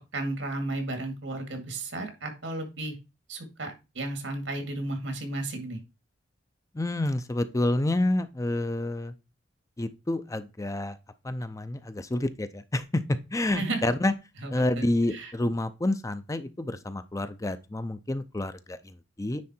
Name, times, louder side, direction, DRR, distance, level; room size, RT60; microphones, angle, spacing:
voice 1, 0.1-2.9 3.3-5.8 13.5-13.8 14.4-14.8 15.1-15.3, right 2 dB, 85° right, 2.1 m, -33 dB
voice 2, 6.7-9.1 9.8-11.0 11.2-14.1 14.5-19.4, left 1 dB, 15° left, 0.5 m, -29 dB
9.6 x 3.8 x 4.3 m
head